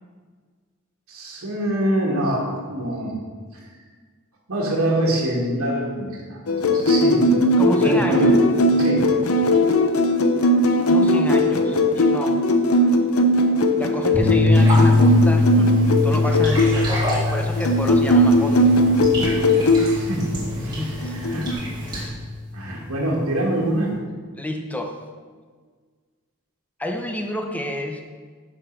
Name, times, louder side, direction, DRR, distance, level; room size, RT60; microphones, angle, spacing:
voice 1, 1.1-3.2 3.5-3.6 4.5-8.4 8.8-9.1 19.7-21.4 22.5-23.9, right 1 dB, 80° right, -4 dB, 1.5 m, -25 dB
sound 1, 6.5-16.8 17.6-19.9 21.0-21.5, left 1 dB, 80° left, 0.7 m, -18 dB
voice 2, 7.6-8.3 10.8-12.4 13.8-15.8 16.0-18.7 19.8-19.9 20.6-22.1 24.4-25.0 26.8-28.0, left 1 dB, 5° left, 4 dB, 0.6 m, -30 dB
sound 2, 14.1-22.5, left 3 dB, 35° left, 2.4 m, -22 dB
sound 3, 14.5-22.1, right 1 dB, 20° right, 2.1 m, -31 dB
7.1 x 5.8 x 5.1 m, 1.6 s
head